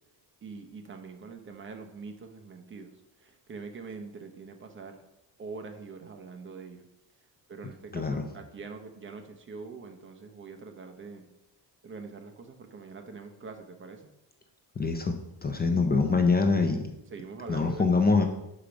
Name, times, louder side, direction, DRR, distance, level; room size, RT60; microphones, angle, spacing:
voice 1, 0.4-2.9 3.2-5.0 5.4-6.9 7.5-11.3 11.8-14.1 17.1-17.9, right 4 dB, 30° right, 5 dB, 0.7 m, -44 dB
voice 2, 7.9-8.2 14.8-15.2 15.4-16.8 17.5-18.2, left 4 dB, 25° left, 5 dB, 0.5 m, -24 dB
5.9 x 5.0 x 5.1 m, 0.92 s
cardioid pair, 150°, 41 cm